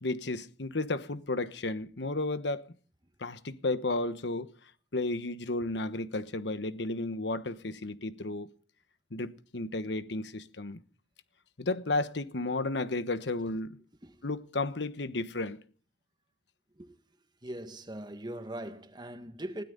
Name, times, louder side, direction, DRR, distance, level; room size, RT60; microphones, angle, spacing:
voice 1, 0.0-2.7 3.2-4.5 4.9-8.5 9.1-10.8 11.6-13.8 14.2-15.6, left 2 dB, 75° left, 1.2 m, -33 dB
voice 2, 17.4-19.6, right 1 dB, 25° right, 1.7 m, -40 dB
20.0 x 17.0 x 4.0 m
head